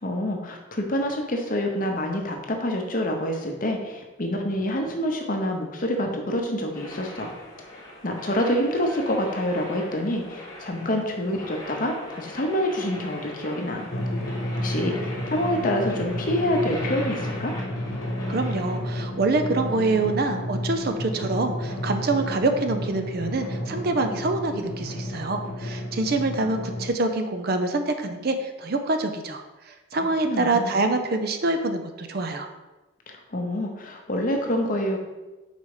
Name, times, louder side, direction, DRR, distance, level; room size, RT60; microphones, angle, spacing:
voice 1, 0.0-7.3 8.0-13.9 14.6-15.0 15.3-17.6 30.2-30.8 33.1-35.0, left 1 dB, 40° left, 2 dB, 0.8 m, -27 dB
sound 1, 6.7-18.8, left 1 dB, 20° left, 1.0 m, -41 dB
Drum, 13.9-26.9, left 1 dB, 75° left, 0.8 m, -31 dB
voice 2, 18.3-32.5, right 2 dB, 50° right, 7 dB, 0.5 m, -26 dB
4.8 x 4.1 x 4.8 m, 1.1 s
head